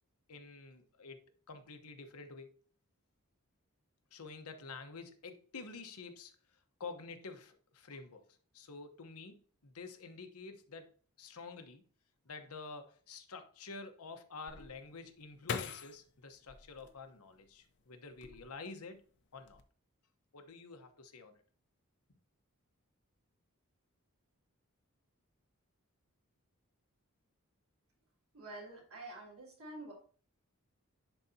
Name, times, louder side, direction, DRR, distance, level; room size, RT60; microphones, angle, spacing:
voice 1, 0.3-2.6 4.1-6.3 6.8-8.2 8.5-9.4 9.6-11.8 12.2-19.0 19.3-19.6 20.3-21.4, left 4 dB, 90° left, 1.1 m, -49 dB
sound 1, 14.5-17.6 18.1-18.8 19.1-19.6, left 6 dB, 55° left, 0.7 m, -43 dB
voice 2, 28.3-29.9, right 2 dB, 75° right, 3.1 m, -48 dB
10.5 x 4.1 x 2.8 m
head